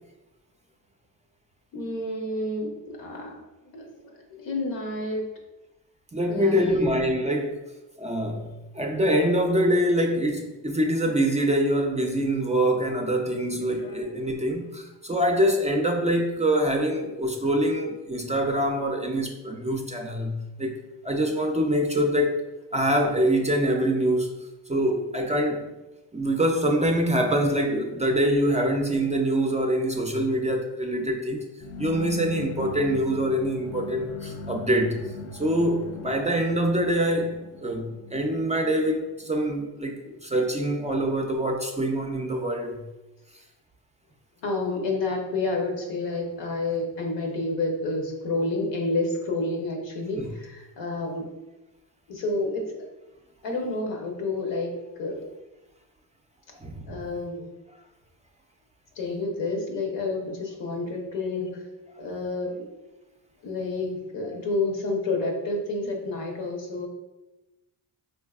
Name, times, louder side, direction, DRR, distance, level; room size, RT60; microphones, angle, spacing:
voice 1, 1.7-3.4 3.7-5.3 6.3-6.9 13.4-14.2 44.4-51.3 52.1-52.7 53.4-55.3 56.9-57.5 58.9-61.6 62.0-62.6 63.4-66.9, left 2 dB, 75° left, 1 dB, 0.9 m, -29 dB
voice 2, 6.1-7.6 8.0-8.5 8.7-20.7 21.0-22.4 22.7-24.4 24.7-25.6 26.1-31.4 31.8-42.8 50.2-50.3 56.6-57.0, equal, 15° right, 2 dB, 0.4 m, -25 dB
sound 1, 31.6-39.4, left 4 dB, 35° left, 0.5 m, -40 dB
3.8 x 2.7 x 2.3 m, 1.0 s
supercardioid pair, 55°, 44 cm